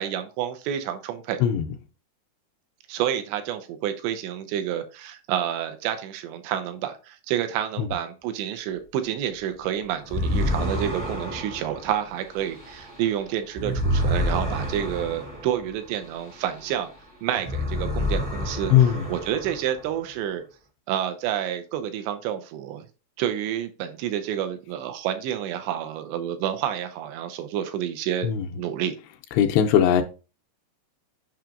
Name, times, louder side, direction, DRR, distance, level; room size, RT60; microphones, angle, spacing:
voice 1, 0.0-1.4 2.9-16.9 17.2-20.4 20.9-22.9 23.2-28.3 28.6-29.0, right 10 dB, 85° right, 3.0 m, -29 dB
sound 1, 10.0-17.0 17.3-20.0, left 1 dB, 15° right, 0.6 m, -29 dB
voice 2, 18.7-19.1 28.2-28.5 29.4-30.0, left 9 dB, 85° left, 2.7 m, -19 dB
7.5 x 5.7 x 2.5 m
omnidirectional pair, 4.9 m